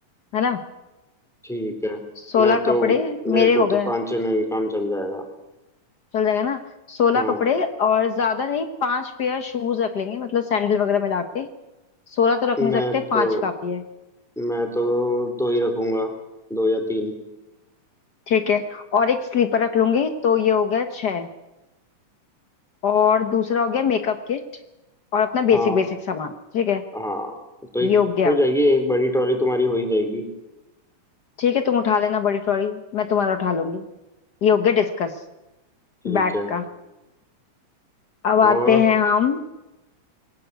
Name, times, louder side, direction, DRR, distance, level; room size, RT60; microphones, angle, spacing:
voice 1, 1.4-2.0 2.4-3.0 3.2-5.2 7.1-7.4 12.6-13.4 14.3-16.1 16.5-17.1 25.5-25.8 26.9-27.3 27.7-27.9 28.2-30.2 36.0-36.5 38.4-38.8, left 1 dB, ahead, 5 dB, 3.3 m, -23 dB
voice 2, 2.3-3.9 6.1-6.6 6.9-11.5 12.1-13.8 18.3-21.3 22.8-24.4 25.1-26.8 27.8-28.3 31.4-33.8 34.4-35.1 36.0-36.6 38.2-39.4, left 6 dB, 75° left, 7 dB, 0.9 m, -21 dB
23.0 x 18.0 x 8.2 m, 0.98 s
omnidirectional pair, 3.6 m